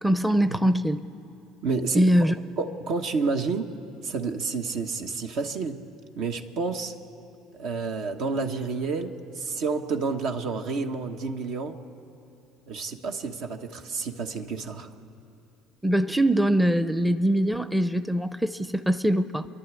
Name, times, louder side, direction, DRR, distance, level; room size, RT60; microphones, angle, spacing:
voice 1, 0.0-1.0 1.9-2.3 15.8-19.5, equal, 5° right, 11 dB, 0.6 m, -22 dB
voice 2, 1.6-3.7 4.0-5.8 6.2-6.9 7.6-11.8 12.7-14.9, right 4 dB, 65° right, 5 dB, 1.2 m, -30 dB
28.0 x 11.0 x 8.3 m, 2.9 s
supercardioid pair, 85°, 0 cm